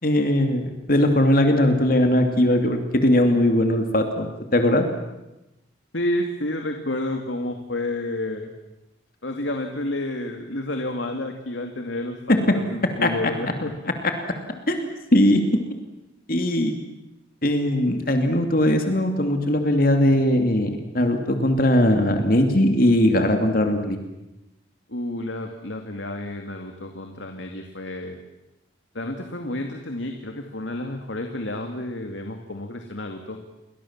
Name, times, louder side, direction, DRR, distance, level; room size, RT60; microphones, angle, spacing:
voice 1, 0.0-4.9 12.3-12.5 13.0-13.1 14.7-15.6 16.3-16.7 17.4-24.0, left 1 dB, 45° left, 5 dB, 2.7 m, -20 dB
voice 2, 5.9-8.5 9.2-12.2 12.5-13.7 24.9-28.2 28.9-33.4, left 1 dB, 70° left, 4 dB, 2.4 m, -30 dB
29.5 x 22.5 x 7.4 m, 0.97 s
head